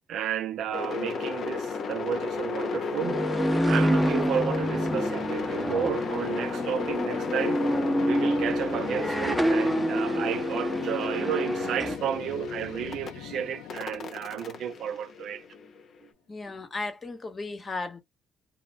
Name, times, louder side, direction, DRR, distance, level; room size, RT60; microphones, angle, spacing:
voice 1, 0.1-3.2 3.6-7.6 8.0-15.4, right 9 dB, 70° right, 0.3 m, -32 dB
sound 1, 0.5-15.6, left 11 dB, 80° left, 0.4 m, -42 dB
sound 2, 0.7-13.1 13.7-15.8, left 4 dB, 60° left, 0.8 m, -33 dB
sound 3, 3.0-12.0, right 1 dB, ahead, 0.9 m, -28 dB
voice 2, 16.3-18.0, left 3 dB, 35° left, 1.0 m, -35 dB
2.4 x 2.1 x 3.2 m
supercardioid pair, 60°, 0 cm